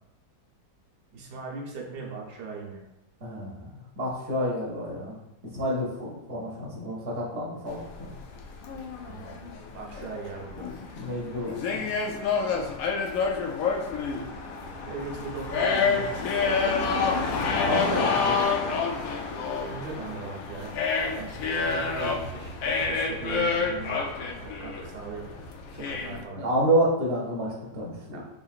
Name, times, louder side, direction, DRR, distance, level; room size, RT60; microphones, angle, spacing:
voice 1, 1.1-2.8 9.0-9.4 9.7-10.7 14.9-17.4 19.6-24.0 24.4-25.4 25.7-26.5 28.1-28.2, right 4 dB, 75° right, -1 dB, 1.4 m, -39 dB
voice 2, 3.2-3.7 4.0-5.2 5.5-8.1 11.0-11.9 17.6-18.5 26.3-28.2, right 1 dB, 50° right, -5 dB, 0.9 m, -29 dB
sound 1, 7.7-26.2, left 5 dB, 70° left, 0.8 m, -28 dB
3.9 x 3.8 x 2.4 m, 0.92 s
omnidirectional pair, 1.8 m